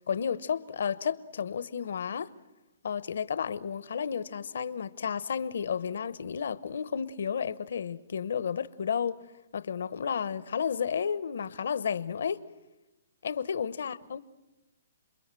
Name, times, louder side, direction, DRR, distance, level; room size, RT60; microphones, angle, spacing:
voice 1, 0.0-2.3 2.8-9.2 9.5-12.4 13.2-14.2, left 7 dB, 75° left, 0.9 m, -32 dB
28.0 x 22.5 x 7.6 m
hypercardioid pair, 160°, 0 cm